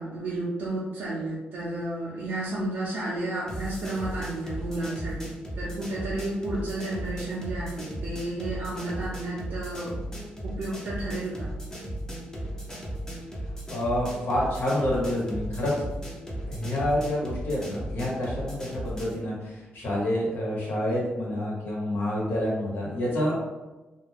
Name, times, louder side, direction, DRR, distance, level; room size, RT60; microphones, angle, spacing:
voice 1, 0.0-10.0 10.4-11.5, right 2 dB, 65° right, -8 dB, 0.6 m, -32 dB
sound 1, 3.5-19.2, right 1 dB, 15° left, 0.8 m, -36 dB
voice 2, 13.7-15.9 16.5-23.4, left 1 dB, 65° left, -5 dB, 1.1 m, -28 dB
2.4 x 2.2 x 3.3 m, 1.1 s
cardioid pair, 90°, 4 cm